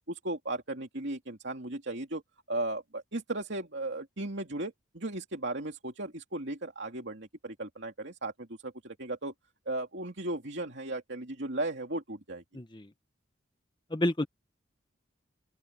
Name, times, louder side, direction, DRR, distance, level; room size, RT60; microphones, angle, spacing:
voice 1, 0.1-2.2 2.5-9.3 9.7-12.4, right 2 dB, 65° right, 2.6 m, -36 dB
voice 2, 12.5-12.9 13.9-14.3, left 1 dB, 25° left, 1.1 m, -29 dB
open air
head